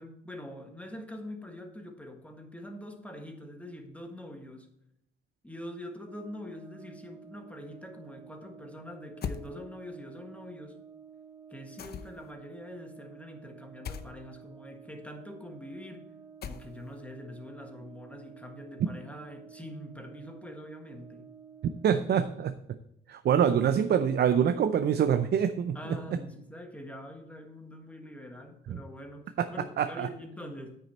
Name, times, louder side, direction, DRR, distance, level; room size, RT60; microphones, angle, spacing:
voice 1, 0.0-4.7 5.4-10.8 11.5-16.1 16.4-21.3 25.7-30.8, left 1 dB, 5° left, 3 dB, 1.5 m, -44 dB
Brass instrument, 6.1-22.4, right 7 dB, 25° right, 0.9 m, -51 dB
sound 1, 9.2-9.5 11.8-12.3 13.8-14.1 16.4-16.9, left 7 dB, 55° left, 0.7 m, -38 dB
voice 2, 21.8-22.5 23.1-25.8 28.7-28.8 29.4-29.5 29.8-30.1, right 8 dB, 55° right, 9 dB, 0.6 m, -25 dB
9.2 x 6.4 x 4.3 m, 0.79 s
cardioid pair, 90°, 20 cm